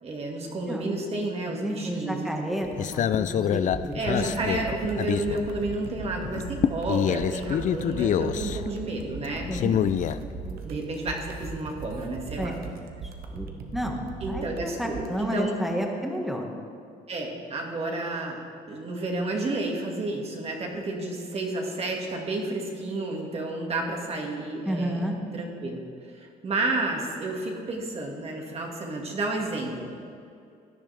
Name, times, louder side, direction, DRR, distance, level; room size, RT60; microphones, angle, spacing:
voice 1, 0.0-2.3 3.9-9.5 10.6-12.5 14.2-15.6 17.1-18.4 18.7-25.8 26.1-29.9, right 2 dB, 35° right, 0 dB, 2.1 m, -31 dB
voice 2, 1.5-4.3 9.5-9.8 10.2-10.6 12.4-12.7 13.0-16.5 24.6-25.2, equal, ahead, 1 dB, 1.7 m, -31 dB
sound 1, 2.6-5.9 6.2-10.5, left 9 dB, 50° left, 0.5 m, -27 dB
sound 2, 3.7-15.1, right 5 dB, 60° right, 1.2 m, -39 dB
16.5 x 10.5 x 3.5 m, 2.4 s
cardioid pair, 110°, 17 cm